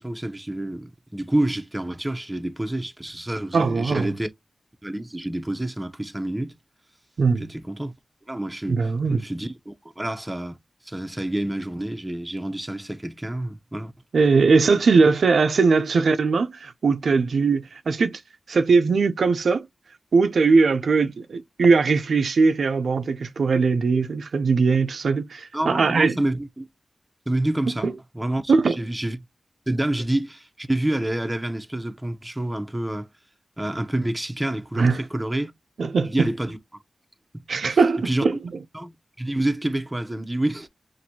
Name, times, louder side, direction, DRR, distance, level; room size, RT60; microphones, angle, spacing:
voice 1, 0.0-4.3 4.8-6.6 7.4-7.9 8.3-10.6 10.8-13.9 25.5-26.7 27.3-29.2 29.7-33.1 33.6-35.5 36.0-36.6 37.3-38.4 38.7-40.7, right 1 dB, 10° right, 0.6 m, -28 dB
voice 2, 3.5-4.1 7.2-7.5 8.7-9.2 14.1-18.2 18.5-19.7 20.1-26.1 27.8-27.9 28.5-28.8 34.8-35.0 35.8-36.1 37.5-38.4, right 4 dB, 90° right, 0.4 m, -20 dB
5.9 x 2.6 x 2.7 m
wide cardioid pair, 100°, 0 cm